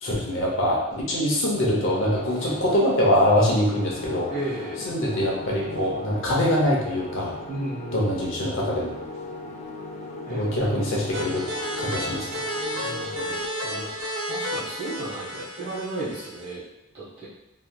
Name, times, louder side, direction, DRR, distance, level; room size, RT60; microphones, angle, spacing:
voice 1, 0.0-4.3 4.9-7.3 7.9-8.9 10.3-11.5 11.8-12.4, left 1 dB, 70° left, -3 dB, 0.8 m, -23 dB
sound 1, 1.5-13.4, left 2 dB, 35° left, 0.3 m, -38 dB
voice 2, 4.3-4.9 7.5-8.4 10.3-11.1 12.8-16.6 16.9-17.3, right 2 dB, 30° right, -10 dB, 1.1 m, -34 dB
sound 2, 11.1-16.5, equal, 80° right, 0.5 m, -32 dB
3.2 x 2.7 x 2.3 m, 0.85 s
head